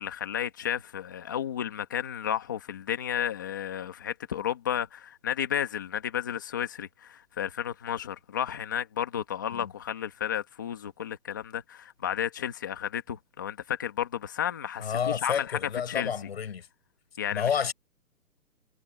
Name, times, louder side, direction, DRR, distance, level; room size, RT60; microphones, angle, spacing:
voice 1, 0.0-15.6 15.9-16.1 17.2-17.5, left 9 dB, 15° left, 1.3 m, -32 dB
voice 2, 14.8-16.7 17.3-17.7, left 7 dB, 40° left, 7.7 m, -30 dB
hypercardioid pair, 175°, 46 cm